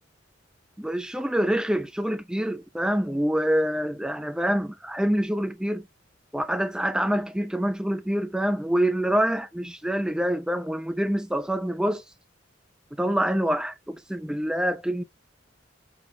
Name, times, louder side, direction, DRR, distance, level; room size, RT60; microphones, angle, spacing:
voice 1, 0.8-5.8 6.3-12.0 13.0-15.0, equal, 5° right, 0.4 m, -26 dB
6.0 x 2.3 x 3.7 m
head